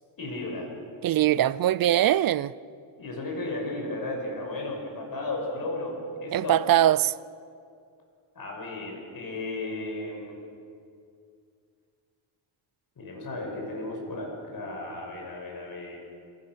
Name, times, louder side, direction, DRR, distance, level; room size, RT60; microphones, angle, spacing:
voice 1, 0.2-0.7 3.0-6.6 8.3-10.4 13.0-16.0, left 2 dB, 45° left, 6.0 m, -34 dB
voice 2, 1.0-2.5 6.3-7.1, right 12 dB, 45° right, 0.5 m, -22 dB
26.5 x 17.0 x 6.3 m
cardioid pair, 110°, 50 cm